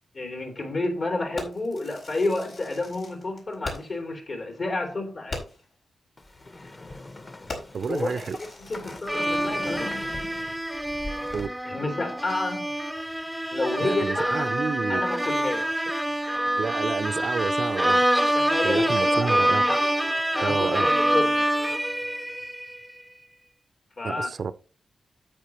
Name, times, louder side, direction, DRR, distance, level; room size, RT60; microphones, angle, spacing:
voice 1, 0.1-5.4 7.9-8.3 8.6-9.9 11.6-12.7 13.5-14.5 14.9-15.9 18.3-19.8 20.3-21.5 24.0-24.3, left 2 dB, 60° left, 3.2 m, -30 dB
Fireworks, 1.4-4.1 4.4-4.5 4.9-5.0 5.3-5.7 6.3-6.5 6.9-7.1 7.5-9.6, left 2 dB, 80° left, 4.6 m, -40 dB
sound 1, 6.2-11.5, left 2 dB, 40° left, 1.4 m, -41 dB
voice 2, 7.7-8.4 11.3-11.5 13.8-15.0 16.6-18.0 18.6-19.6 20.4-20.9 24.0-24.5, right 5 dB, 65° right, 0.7 m, -29 dB
sound 2, 9.1-22.8, right 1 dB, 5° right, 0.7 m, -26 dB
10.5 x 8.3 x 3.1 m
cardioid pair, 70°, 0 cm